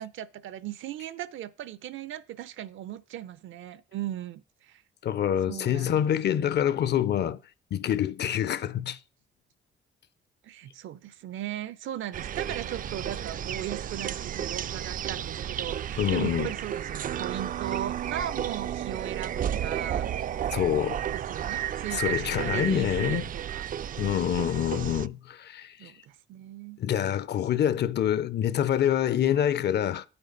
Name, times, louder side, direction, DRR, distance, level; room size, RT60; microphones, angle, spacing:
voice 1, 0.0-4.8 5.5-6.1 10.4-20.1 21.1-23.6 25.8-26.8, right 11 dB, 75° right, 0.7 m, -37 dB
voice 2, 5.0-7.4 7.7-9.0 16.0-16.5 20.5-21.0 21.9-23.2 24.0-25.9 26.8-30.0, left 10 dB, 60° left, 0.6 m, -26 dB
sound 1, 12.1-25.1, right 10 dB, 45° right, 0.4 m, -32 dB
9.1 x 8.9 x 4.0 m
cardioid pair, 90°, 20 cm